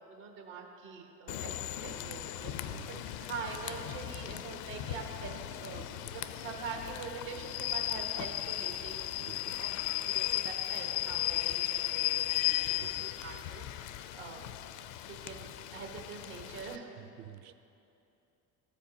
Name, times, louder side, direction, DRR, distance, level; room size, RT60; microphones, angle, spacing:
voice 1, 0.1-1.5 1.8-2.7 3.2-9.7 10.0-13.9 14.1-14.4 15.1-17.0, right 5 dB, 70° right, 0 dB, 1.5 m, -44 dB
Rain / Train, 1.3-16.8, left 14 dB, 65° left, 0.5 m, -36 dB
Explosion, 1.8-3.6, left 1 dB, 10° left, 0.4 m, -57 dB
voice 2, 2.7-3.1 9.2-9.6 12.8-13.1 17.0-17.5, right 11 dB, 50° right, 9 dB, 0.6 m, -50 dB
14.0 x 5.1 x 2.8 m, 2.7 s
hypercardioid pair, 65°, 47 cm